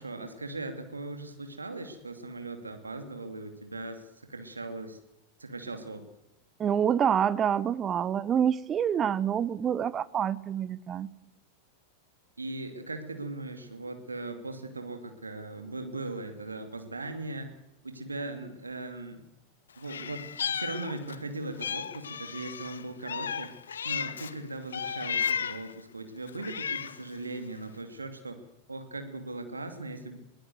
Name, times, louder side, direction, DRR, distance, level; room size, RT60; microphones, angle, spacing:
voice 1, 0.0-5.0 5.4-6.1 12.4-17.5 17.8-19.2 19.8-23.5 23.8-28.4 28.7-30.2, right 2 dB, 80° right, 7 dB, 2.6 m, -39 dB
voice 2, 6.6-11.1, right 8 dB, 25° right, 17 dB, 0.9 m, -27 dB
Meow, 19.8-21.2 21.6-24.3 24.7-25.7 26.3-27.1, left 7 dB, 70° left, 1.0 m, -34 dB
22.5 x 18.0 x 8.0 m, 0.84 s
figure-of-eight pair, 90°, 0 cm